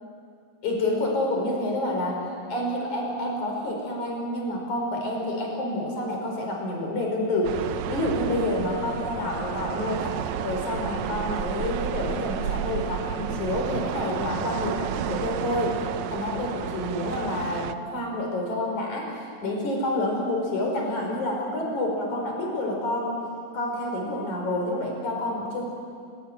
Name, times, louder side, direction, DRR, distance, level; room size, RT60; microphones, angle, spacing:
voice 1, 0.6-2.2 2.5-7.6 7.9-10.1 10.4-23.2 23.5-25.6, left 1 dB, 85° left, 0 dB, 6.3 m, -28 dB
sound 1, 7.4-17.7, right 9 dB, 75° right, 2.1 m, -31 dB
29.5 x 17.5 x 9.5 m, 2.4 s
omnidirectional pair, 3.3 m